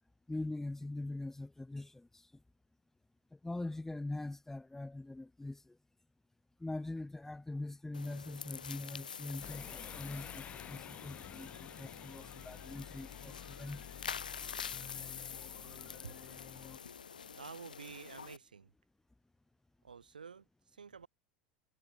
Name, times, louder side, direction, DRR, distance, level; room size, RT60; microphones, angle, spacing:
voice 1, 0.3-2.2 3.3-5.8 6.6-13.8, left 2 dB, 10° left, 4.1 m, -43 dB
sound 1, 7.9-18.4, left 7 dB, 85° left, 1.8 m, -47 dB
sound 2, 9.4-16.8, left 8 dB, 35° left, 7.1 m, -51 dB
voice 2, 15.6-16.2 17.3-18.7 19.8-21.1, right 6 dB, 85° right, 3.8 m, -50 dB
hypercardioid pair, 80°, 4 cm